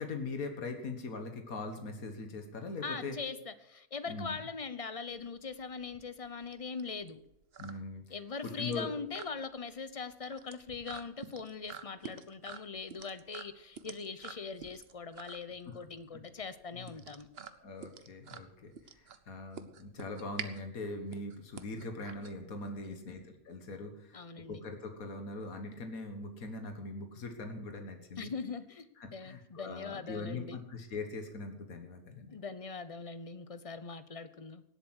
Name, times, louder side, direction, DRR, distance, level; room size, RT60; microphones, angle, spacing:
voice 1, 0.0-3.2 4.1-4.4 7.6-8.2 8.4-8.9 15.7-15.8 16.7-16.9 17.6-28.3 29.0-32.4, left 3 dB, 85° left, 6 dB, 2.0 m, -41 dB
voice 2, 2.8-7.2 8.1-17.3 22.8-23.2 24.1-24.6 28.2-28.9 29.1-30.6 32.3-34.6, left 4 dB, 35° left, 13 dB, 0.6 m, -41 dB
sound 1, 5.1-22.9, right 6 dB, 50° right, 1.0 m, -49 dB
18.0 x 8.1 x 6.3 m, 0.83 s
omnidirectional pair, 1.5 m